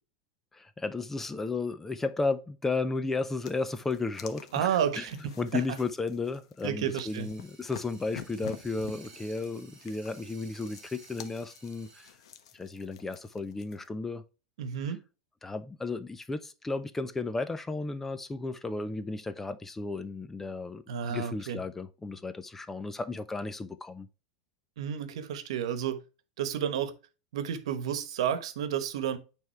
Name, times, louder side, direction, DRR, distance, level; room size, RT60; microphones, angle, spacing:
voice 1, 0.5-12.1 12.5-14.2 15.4-20.8 21.1-24.1, left 3 dB, 10° left, 0.4 m, -34 dB
sound 1, 3.4-13.9, left 9 dB, 85° left, 1.0 m, -49 dB
voice 2, 4.5-5.2 5.5-5.6 6.6-7.3 14.6-15.0 20.9-21.6 24.8-26.0 26.4-26.9 27.3-29.2, right 9 dB, 85° right, 1.1 m, -31 dB
sound 2, 7.0-12.1, right 4 dB, 25° right, 3.5 m, -55 dB
9.4 x 3.5 x 3.4 m
supercardioid pair, 155°, 3 cm